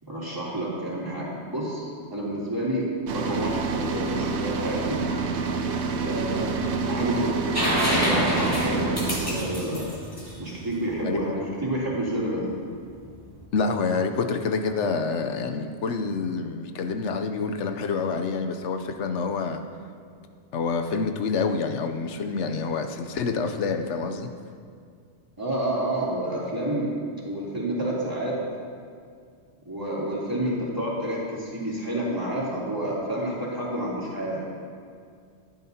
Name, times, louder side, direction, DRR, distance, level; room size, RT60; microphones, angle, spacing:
voice 1, 0.0-5.0 6.0-6.5 6.9-9.8 10.4-12.5 25.4-27.0 27.2-28.4 29.6-34.5, right 1 dB, 20° right, -7 dB, 3.0 m, -29 dB
sound 1, 3.1-11.0, right 4 dB, 75° right, 1.1 m, -28 dB
sound 2, 7.5-11.2 13.1-13.2, equal, 20° left, 2.8 m, -26 dB
voice 2, 13.5-19.6 20.5-24.3, left 4 dB, 90° left, 6 dB, 1.0 m, -27 dB
15.5 x 11.0 x 2.8 m, 2.2 s
omnidirectional pair, 1.2 m